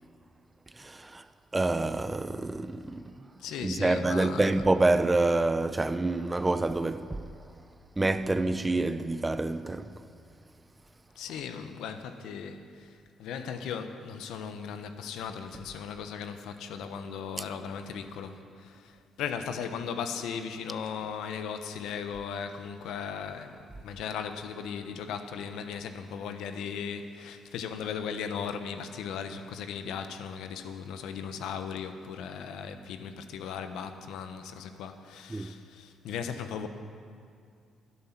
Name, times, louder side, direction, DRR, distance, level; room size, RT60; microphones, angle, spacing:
voice 1, 0.8-1.2 1.5-3.0 3.6-7.1 8.0-9.8 35.3-35.5, right 2 dB, 20° right, 0.6 m, -27 dB
voice 2, 3.4-4.6 11.1-36.7, left 7 dB, 85° left, 1.0 m, -37 dB
24.5 x 8.4 x 5.9 m
cardioid pair, 90°, 0 cm